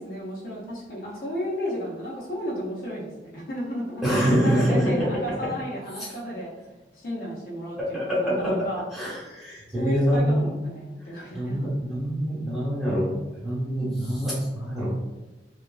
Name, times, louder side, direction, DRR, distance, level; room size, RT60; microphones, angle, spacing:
voice 1, 0.0-6.5 6.9-8.8 9.8-11.6, equal, 55° left, -5 dB, 0.6 m, -33 dB
voice 2, 4.0-4.8 7.9-8.5 8.9-10.5 11.0-13.1 13.4-14.9, equal, ahead, -9 dB, 1.0 m, -25 dB
2.8 x 2.5 x 2.3 m, 1.1 s
head